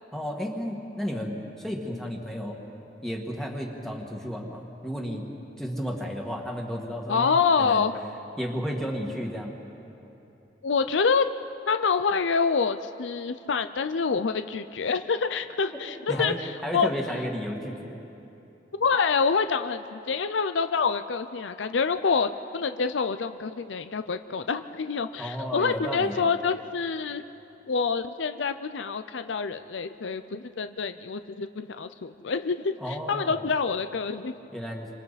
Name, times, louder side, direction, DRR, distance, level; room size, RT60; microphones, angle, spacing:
voice 1, 0.1-2.6 3.0-5.2 5.6-7.8 8.4-9.5 16.1-16.4 16.6-18.0 25.2-26.2 32.8-33.4 34.5-34.9, equal, ahead, -1 dB, 1.8 m, -33 dB
voice 2, 7.1-7.9 10.6-11.2 11.7-16.9 18.7-27.2 27.7-34.3, left 5 dB, 85° left, 10 dB, 0.6 m, -26 dB
28.5 x 25.5 x 4.2 m, 3.0 s
head